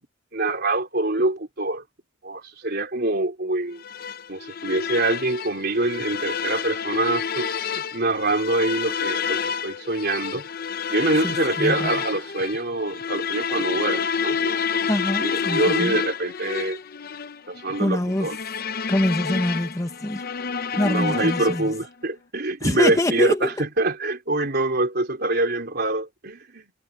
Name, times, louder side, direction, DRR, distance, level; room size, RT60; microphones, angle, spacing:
voice 1, 0.3-1.8 2.2-3.8 4.3-10.4 10.9-14.6 15.2-16.8 17.5-18.4 20.8-26.7, right 2 dB, 50° right, 3.6 m, -25 dB
sound 1, 3.8-21.8, left 6 dB, 45° left, 0.7 m, -29 dB
voice 2, 11.2-11.9 14.9-16.0 17.8-18.3 18.9-20.2 20.8-21.7 22.6-23.7, left 1 dB, 15° left, 1.0 m, -24 dB
head